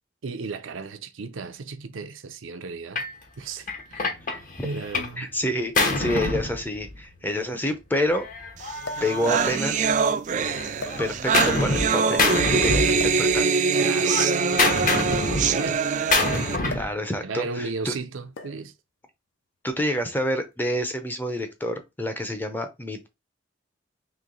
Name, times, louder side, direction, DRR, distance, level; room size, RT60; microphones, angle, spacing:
voice 1, 0.2-3.0 3.4-5.4 12.7-13.0 13.8-15.8 17.2-18.7, right 4 dB, 85° right, 0.6 m, -35 dB
Gunshot gunfire, 3.0-3.2 3.7-5.2 5.5-7.2 8.1-10.0 10.3-11.9 12.2-13.4 13.7-16.9, left 2 dB, 45° left, 0.9 m, -26 dB
sound 1, 5.1-5.2 6.3-6.4 6.6-6.7 8.8-9.2 10.0-10.2 10.8-11.5 13.0-13.3 14.4-16.1 16.7-17.1 17.3-17.6 18.4-18.7 19.7-20.0, left 3 dB, 75° left, 0.6 m, -40 dB
voice 2, 5.2-8.3 9.0-9.9 11.0-13.5 16.7-17.9 19.6-23.1, equal, 10° left, 0.5 m, -28 dB
sound 2, 8.7-8.8 9.0-16.6, right 5 dB, 40° right, 0.3 m, -23 dB
3.1 x 3.0 x 3.8 m
head